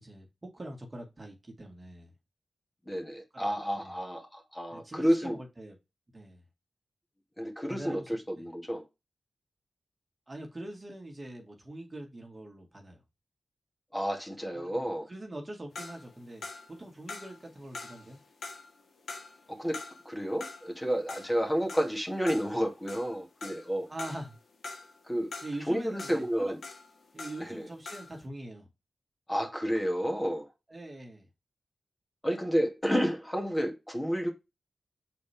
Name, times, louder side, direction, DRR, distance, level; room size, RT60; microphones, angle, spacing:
voice 1, 0.0-2.1 3.3-3.5 3.8-3.9 4.7-5.8 6.1-6.4 7.7-8.5 10.3-13.0 14.5-18.2 23.9-24.3 25.4-26.5 27.1-28.7 30.7-31.3, right 1 dB, 35° right, 2.0 m, -43 dB
voice 2, 2.9-5.4 7.4-8.8 13.9-15.1 19.5-23.9 25.0-25.3 25.7-26.6 27.4-27.7 29.3-30.5 32.2-34.3, equal, 15° left, 2.2 m, -31 dB
sound 1, 15.7-27.6 27.8-28.2, left 3 dB, 85° left, 1.2 m, -44 dB
6.7 x 4.2 x 3.5 m
cardioid pair, 50°, 0 cm